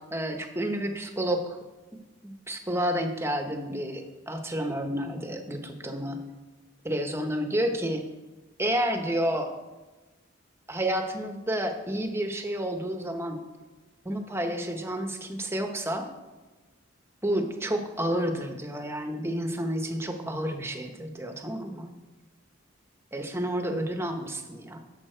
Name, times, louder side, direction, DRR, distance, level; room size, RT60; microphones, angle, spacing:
voice 1, 0.0-1.6 2.2-6.3 6.8-8.0 8.6-9.5 10.7-13.4 14.0-16.1 17.2-21.9 23.1-24.8, right 1 dB, 15° right, 5 dB, 1.0 m, -30 dB
11.5 x 7.3 x 4.5 m, 1.2 s
head